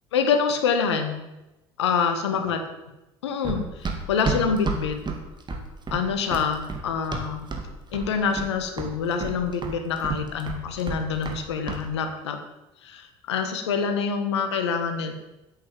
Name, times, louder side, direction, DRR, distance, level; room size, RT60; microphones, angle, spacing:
voice 1, 0.1-1.2 1.8-2.6 3.2-5.0 5.9-7.5 7.9-12.4 12.8-15.1, left 6 dB, 85° left, 7 dB, 1.4 m, -26 dB
Run, 3.4-7.7 7.9-8.5 8.8-11.4 11.7-11.8, right 3 dB, 30° right, 2.3 m, -30 dB
8.7 x 8.3 x 7.4 m, 0.98 s
hypercardioid pair, 65°, 14 cm